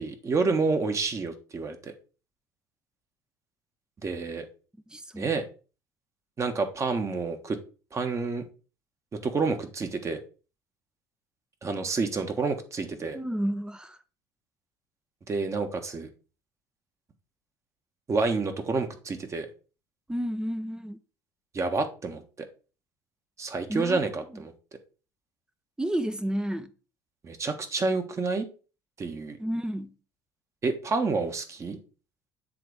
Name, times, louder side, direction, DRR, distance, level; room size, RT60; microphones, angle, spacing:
voice 1, 0.0-1.9 4.0-4.4 5.1-5.4 6.4-7.6 7.9-8.4 9.2-10.2 11.6-13.2 15.3-16.1 18.1-19.5 21.5-22.2 23.4-24.5 27.2-28.4 29.0-29.4 30.6-31.8, right 4 dB, 35° right, 1.4 m, -28 dB
voice 2, 4.9-5.3 13.1-14.0 20.1-21.0 23.7-24.1 24.3-24.4 25.8-26.7 29.4-30.0, right 1 dB, 10° right, 0.7 m, -31 dB
7.7 x 3.4 x 4.8 m
hypercardioid pair, 75°, 9 cm